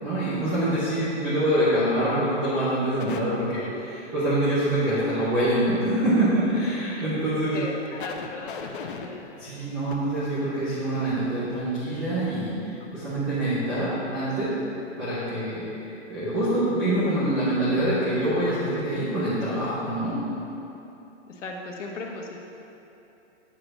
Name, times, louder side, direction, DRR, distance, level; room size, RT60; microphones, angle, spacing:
voice 1, 0.0-7.6 9.4-12.5 12.9-14.5 15.0-20.1, right 1 dB, 10° right, -13 dB, 0.5 m, -25 dB
sound 1, 3.0-3.2 6.3-6.6 7.1-7.2 7.7-10.0 11.8-11.9 12.2-12.4 12.8-12.9, left 5 dB, 45° left, 0.6 m, -39 dB
voice 2, 7.5-9.2 21.3-22.4, left 3 dB, 80° left, 0 dB, 1.5 m, -37 dB
8.5 x 4.9 x 6.0 m, 2.9 s
hypercardioid pair, 170°, 36 cm